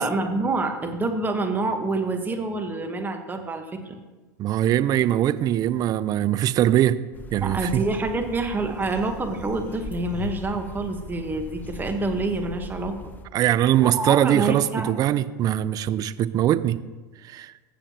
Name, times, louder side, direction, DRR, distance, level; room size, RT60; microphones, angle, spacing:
voice 1, 0.0-4.0 7.4-13.0 13.8-14.9, right 3 dB, 20° right, 5 dB, 1.2 m, -27 dB
voice 2, 4.4-7.0 7.3-7.8 13.3-16.8 17.3-17.5, right 12 dB, 40° right, 15 dB, 0.5 m, -22 dB
sound 1, 7.1-13.2, left 2 dB, 20° left, 0.9 m, -40 dB
sound 2, 7.4-12.4, left 5 dB, 55° left, 2.4 m, -45 dB
15.0 x 6.6 x 2.9 m, 1.3 s
hypercardioid pair, 90°, 10 cm